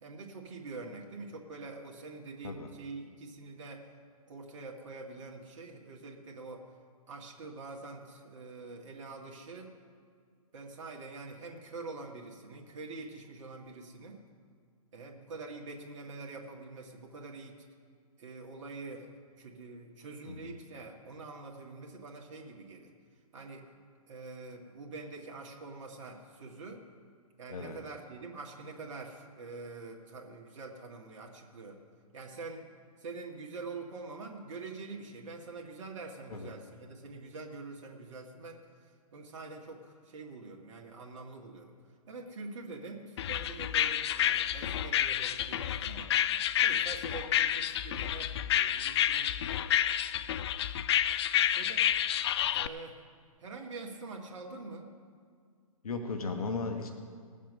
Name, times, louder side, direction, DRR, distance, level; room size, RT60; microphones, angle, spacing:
voice 1, 0.0-3.9 4.3-6.7 7.1-9.7 10.5-14.2 14.9-17.6 18.2-19.1 19.4-22.9 23.3-23.7 24.1-26.8 27.4-31.8 32.1-32.7 33.0-38.6 39.1-41.7 42.1-46.1 46.6-49.3 49.6-49.9 51.5-51.9 52.5-53.0 53.4-54.9, right 3 dB, 55° right, 1 dB, 1.9 m, -45 dB
sound 1, 43.2-52.7, left 11 dB, 45° left, 0.4 m, -29 dB
voice 2, 55.8-56.9, left 4 dB, 70° left, 5 dB, 1.3 m, -36 dB
19.5 x 7.5 x 5.5 m, 2.1 s
hypercardioid pair, 135°, 19 cm